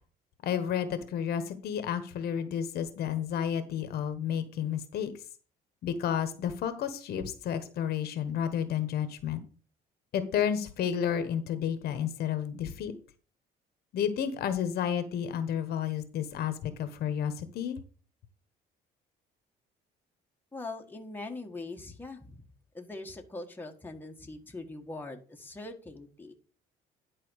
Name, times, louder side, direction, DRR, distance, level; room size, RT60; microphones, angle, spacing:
voice 1, 0.4-5.1 5.8-9.4 10.1-12.9 13.9-17.8, left 8 dB, 70° left, 11 dB, 1.3 m, -31 dB
voice 2, 20.5-22.5 22.7-26.3, left 2 dB, 10° left, 2 dB, 1.6 m, -42 dB
11.0 x 4.3 x 6.4 m, 0.39 s
cardioid pair, 110°, 17 cm